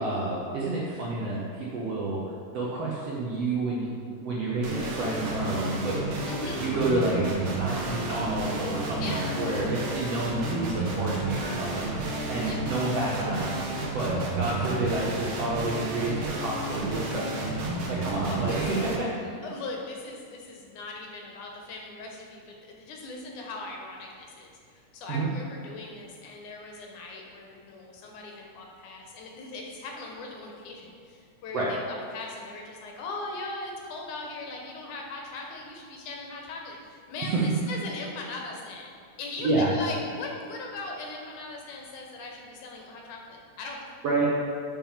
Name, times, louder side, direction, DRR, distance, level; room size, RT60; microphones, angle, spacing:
voice 1, 0.0-2.2 2.5-3.9 4.2-6.3 6.6-7.2 7.6-11.9 12.3-13.6 13.9-17.5 17.9-19.4 25.1-25.3 31.5-31.7 37.2-37.4 39.4-39.7 44.0-44.3, right 2 dB, 70° right, -5 dB, 1.5 m, -29 dB
sound 1, 4.6-19.0, right 2 dB, 85° right, 1.1 m, -31 dB
voice 2, 6.3-6.6 9.0-9.2 12.4-12.6 14.1-14.2 14.7-14.9 18.2-18.7 19.4-43.9, left 3 dB, 70° left, 0 dB, 2.2 m, -39 dB
7.2 x 5.4 x 5.7 m, 2.3 s
omnidirectional pair, 3.9 m